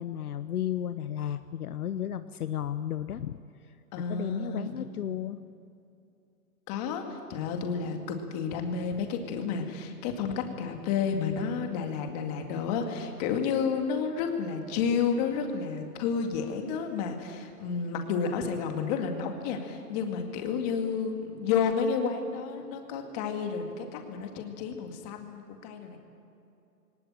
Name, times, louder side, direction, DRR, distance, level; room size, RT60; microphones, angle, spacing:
voice 1, 0.0-3.4 4.1-5.4, left 10 dB, 65° left, 11 dB, 0.9 m, -33 dB
voice 2, 3.9-5.1 6.7-26.0, left 6 dB, 25° left, 4 dB, 2.1 m, -31 dB
21.5 x 19.0 x 8.9 m, 2.7 s
hypercardioid pair, 160°, 48 cm